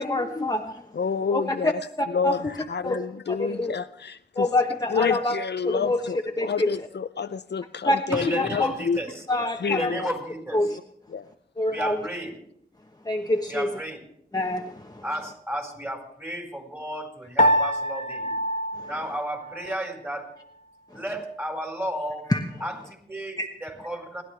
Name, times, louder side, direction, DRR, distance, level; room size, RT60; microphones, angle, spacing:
voice 1, 0.0-0.8 1.3-1.4 2.0-2.5 2.8-3.0 3.4-3.7 4.4-5.4 5.6-6.0 6.4-6.7 7.9-8.7 9.3-9.9 10.5-10.8 11.6-12.0 13.0-13.7 14.3-15.0 18.8-18.9 20.9-21.0 22.3-22.4 23.4-23.5, left 1 dB, 20° left, 1.1 m, -26 dB
voice 2, 0.9-1.8 2.1-4.5 4.9-9.0 9.5-10.0 11.1-11.3, left 6 dB, 70° left, 0.5 m, -29 dB
voice 3, 8.1-9.3 9.7-10.7 11.7-12.4 13.5-14.1 15.0-18.4 18.8-20.3 20.9-22.3 22.6-24.2, right 1 dB, 15° right, 4.5 m, -33 dB
Piano, 17.4-19.9, equal, 45° left, 1.4 m, -25 dB
30.0 x 11.0 x 3.3 m
wide cardioid pair, 65°, 18 cm